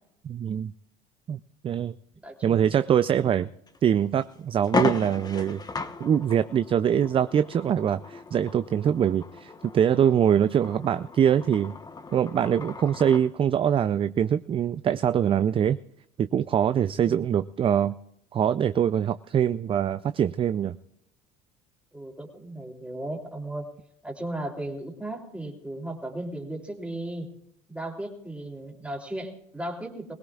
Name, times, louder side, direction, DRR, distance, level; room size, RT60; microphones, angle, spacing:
voice 1, 0.2-0.7 1.3-2.0 2.4-3.5 3.8-5.6 6.0-11.7 12.1-15.8 16.2-17.9 18.3-20.8, right 9 dB, 30° right, 13 dB, 0.4 m, -23 dB
voice 2, 2.2-2.7 3.2-3.3 21.9-23.7 24.0-27.3 27.7-30.1, right 1 dB, 5° right, 1 dB, 3.1 m, -36 dB
sound 1, 3.7-3.8 4.2-4.3 4.6-13.3, left 4 dB, 20° left, 1.1 m, -35 dB
22.5 x 17.0 x 2.4 m, 0.79 s
supercardioid pair, 105°, 18 cm